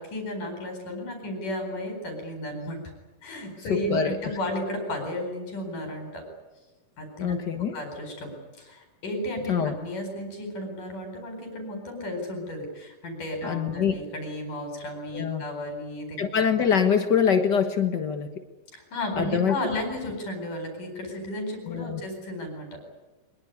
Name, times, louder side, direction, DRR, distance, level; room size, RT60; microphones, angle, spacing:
voice 1, 0.0-2.8 3.2-6.2 7.0-7.4 7.7-8.3 8.6-16.2 18.7-22.8, left 1 dB, 60° left, 4 dB, 6.0 m, -34 dB
voice 2, 3.7-4.2 7.2-7.8 9.5-9.8 13.4-14.0 15.1-15.4 16.2-18.4 19.2-19.6 21.7-22.0, left 7 dB, 80° left, 6 dB, 0.9 m, -24 dB
24.0 x 22.0 x 9.8 m, 1.1 s
omnidirectional pair, 4.3 m